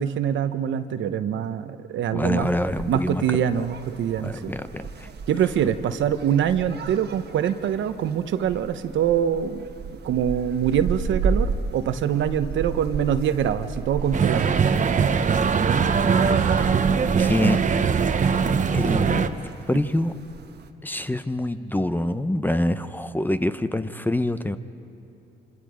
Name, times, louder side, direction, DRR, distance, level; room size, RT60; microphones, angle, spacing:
voice 1, 0.0-2.5 2.9-4.5 5.3-9.7 10.0-14.5, right 9 dB, 70° right, 10 dB, 1.0 m, -24 dB
voice 2, 2.1-3.2 4.2-5.1 16.1-16.7 17.2-17.6 18.3-20.1 20.8-24.6, left 1 dB, 10° left, 11 dB, 0.7 m, -26 dB
sound 1, 2.4-20.7, right 5 dB, 55° right, 1.4 m, -34 dB
sound 2, 14.1-19.3, right 6 dB, 40° right, 1.0 m, -21 dB
27.0 x 26.0 x 5.1 m, 2.8 s
cardioid pair, 90°, 20 cm